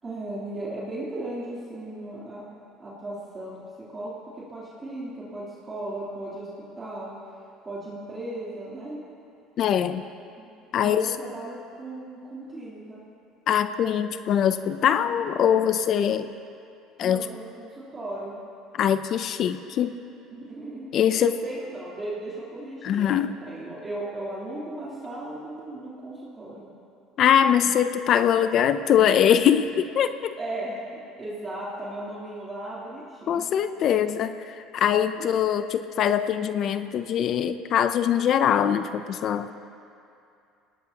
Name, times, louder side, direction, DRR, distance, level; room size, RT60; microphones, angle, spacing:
voice 1, 0.0-2.4 2.8-3.6 3.9-6.5 6.7-7.3 7.6-9.0 10.4-10.5 10.8-13.0 17.0-18.3 20.3-26.7 30.4-30.8 31.2-33.5 34.0-34.1 35.2-35.3, right 1 dB, 25° right, -8 dB, 3.2 m, -36 dB
voice 2, 9.6-10.0 10.7-11.2 13.5-16.3 17.0-17.3 18.7-20.0 20.9-21.4 22.8-23.3 27.2-30.3 33.3-34.3 34.7-39.5, left 9 dB, 50° left, 11 dB, 0.5 m, -22 dB
24.5 x 19.0 x 2.9 m, 2.6 s
cardioid pair, 130°, 0 cm